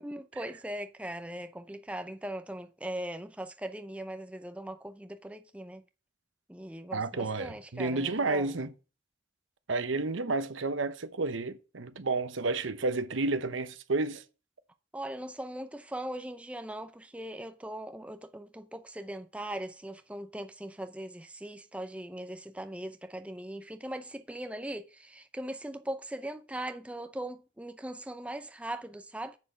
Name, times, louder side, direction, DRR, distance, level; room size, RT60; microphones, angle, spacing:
voice 1, 0.0-5.8 6.5-8.5 14.9-29.4, right 1 dB, 5° right, 0.6 m, -40 dB
voice 2, 6.9-8.7 9.7-14.2, right 3 dB, 85° right, 0.9 m, -31 dB
7.3 x 6.4 x 5.8 m
head